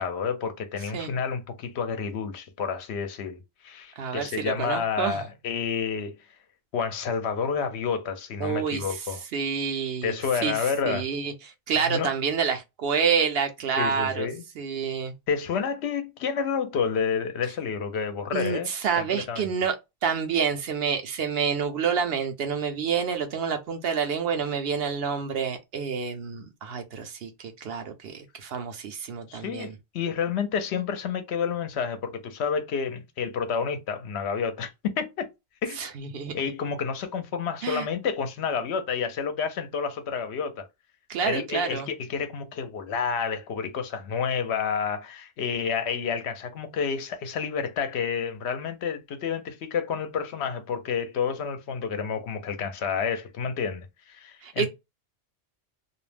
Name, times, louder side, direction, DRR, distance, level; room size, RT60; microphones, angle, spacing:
voice 1, 0.0-6.2 6.7-9.2 10.0-11.1 11.9-12.1 13.8-14.4 15.3-18.7 19.0-19.5 29.3-34.7 35.0-35.2 35.6-35.8 36.3-40.7 41.2-54.7, left 6 dB, 70° left, 0.8 m, -29 dB
voice 2, 4.0-5.2 8.4-9.0 9.3-10.2 10.4-10.6 10.8-11.3 11.7-14.3 14.6-15.1 18.3-19.7 20.0-29.7 35.8-36.4 37.6-37.9 41.1-41.9 54.4-54.7, right 6 dB, 65° right, 0.7 m, -28 dB
2.4 x 2.0 x 3.2 m
omnidirectional pair, 1.2 m